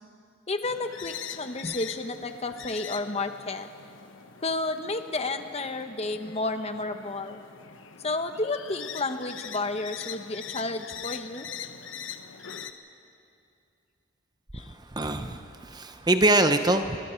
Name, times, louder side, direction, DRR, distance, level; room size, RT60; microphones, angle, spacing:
voice 1, 0.5-3.7 4.4-7.4 8.0-11.5 14.5-14.7, left 2 dB, 35° left, 8 dB, 1.0 m, -31 dB
sound 1, 0.6-12.7, left 8 dB, 80° left, 1.0 m, -42 dB
voice 2, 14.6-17.0, right 2 dB, 20° right, 8 dB, 0.8 m, -24 dB
28.0 x 23.0 x 4.6 m, 2.5 s
head